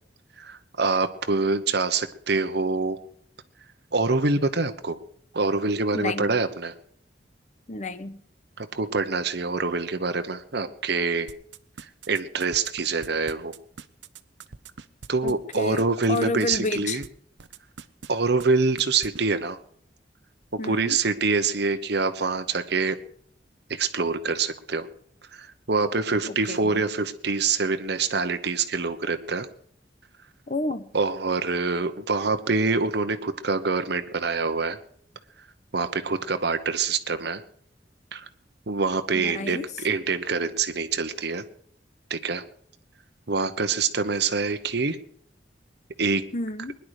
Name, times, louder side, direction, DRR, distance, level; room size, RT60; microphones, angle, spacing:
voice 1, 0.4-3.0 3.9-5.0 5.3-6.7 8.6-11.3 12.1-13.5 15.1-17.0 18.1-19.6 20.6-23.0 23.7-24.9 25.3-29.5 30.9-34.8 35.7-37.4 38.1-38.2 38.7-41.4 42.1-42.4 43.3-45.0 46.0-46.2, right 4 dB, 65° right, 8 dB, 1.1 m, -25 dB
voice 2, 5.9-6.4 7.7-8.2 15.2-15.8 16.1-17.0 20.6-21.0 26.3-26.8 30.5-30.9 39.1-39.7 46.3-46.8, left 2 dB, 40° left, 12 dB, 1.0 m, -30 dB
sound 1, 11.3-17.1 17.4-18.1 18.4-18.5 18.8-19.2, right 5 dB, 85° right, 0.7 m, -42 dB
21.5 x 10.5 x 5.0 m, 0.63 s
head